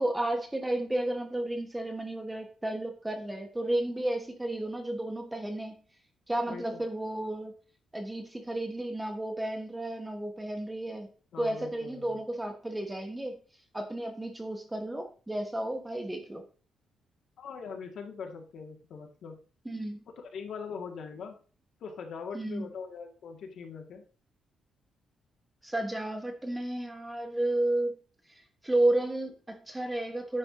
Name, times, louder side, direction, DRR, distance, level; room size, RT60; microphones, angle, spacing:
voice 1, 0.0-5.7 6.3-7.5 7.9-11.1 11.4-13.4 13.7-16.4 19.6-20.0 22.3-22.7 25.6-27.9 28.6-30.4, right 1 dB, 10° right, 4 dB, 1.2 m, -32 dB
voice 2, 6.5-6.8 11.3-12.2 17.4-19.4 20.2-21.4 21.8-24.1, left 5 dB, 65° left, 3 dB, 1.9 m, -42 dB
9.7 x 4.4 x 5.5 m, 0.37 s
cardioid pair, 160°, 0 cm